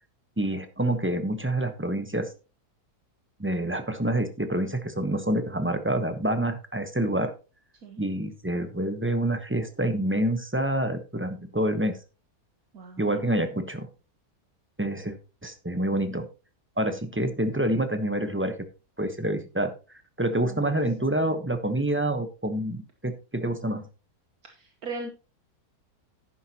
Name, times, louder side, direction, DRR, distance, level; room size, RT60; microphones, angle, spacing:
voice 1, 0.4-2.3 3.4-7.3 8.0-12.0 13.0-13.9 14.8-15.2 15.4-16.3 16.8-18.5 19.0-19.7 20.2-23.8, right 1 dB, 10° right, 8 dB, 0.8 m, -27 dB
voice 2, 12.7-13.3 20.4-20.7 24.4-25.1, right 3 dB, 70° right, 4 dB, 1.6 m, -39 dB
11.0 x 9.7 x 2.9 m, 0.32 s
omnidirectional pair, 1.7 m